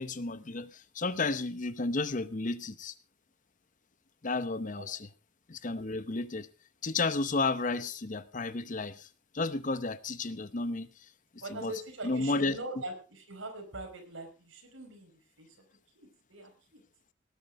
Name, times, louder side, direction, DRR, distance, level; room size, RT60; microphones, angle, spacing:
voice 1, 0.0-2.9 4.2-5.0 5.5-6.5 6.8-9.1 9.3-10.9 11.5-11.7 12.0-12.6, left 3 dB, 40° left, 15 dB, 0.8 m, -32 dB
voice 2, 11.4-15.1 15.4-15.6 15.9-16.8, right 2 dB, 85° right, 4 dB, 5.0 m, -42 dB
18.5 x 9.5 x 4.7 m, 0.33 s
head